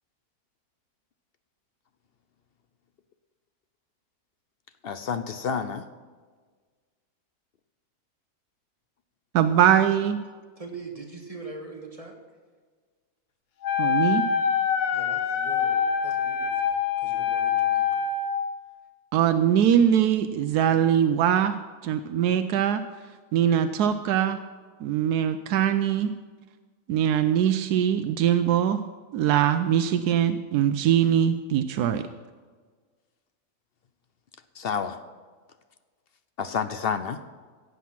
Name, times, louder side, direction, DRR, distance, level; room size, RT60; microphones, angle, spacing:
voice 1, 4.8-5.9 34.6-35.0 36.4-37.2, left 6 dB, 60° left, 10 dB, 0.6 m, -29 dB
voice 2, 9.3-10.2 13.8-14.2 19.1-21.5 21.8-22.8 23.3-24.4 24.8-26.1 26.9-28.8 29.1-32.0, right 9 dB, 85° right, 10 dB, 1.1 m, -22 dB
voice 3, 10.6-12.2 14.9-18.1, right 3 dB, 25° right, 2 dB, 1.5 m, -42 dB
Wind instrument woodwind instrument, 13.6-18.4, left 7 dB, 85° left, 1.5 m, -25 dB
16.5 x 8.2 x 5.8 m, 1.5 s
omnidirectional pair, 1.6 m